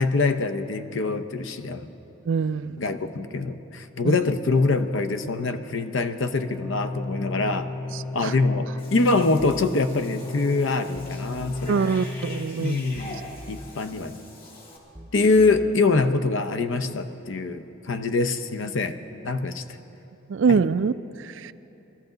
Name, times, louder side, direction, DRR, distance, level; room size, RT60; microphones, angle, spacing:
voice 1, 0.0-1.9 2.8-7.7 8.1-11.8 12.6-13.2 13.5-14.2 15.1-19.0 19.2-19.6 20.5-20.6, left 3 dB, 65° left, 9 dB, 0.7 m, -24 dB
voice 2, 2.3-2.8 4.0-4.1 7.9-8.3 11.7-12.8 20.3-21.5, right 5 dB, 65° right, 15 dB, 0.3 m, -24 dB
sound 1, 6.2-12.5, left 2 dB, 20° left, 0.6 m, -33 dB
Cat / Bathtub (filling or washing), 8.8-14.8, left 2 dB, 45° left, 1.9 m, -44 dB
sound 2, 9.4-9.8 11.0-11.8 13.0-13.8 15.0-15.8, equal, 20° right, 0.6 m, -43 dB
20.5 x 14.0 x 3.9 m, 3.0 s
head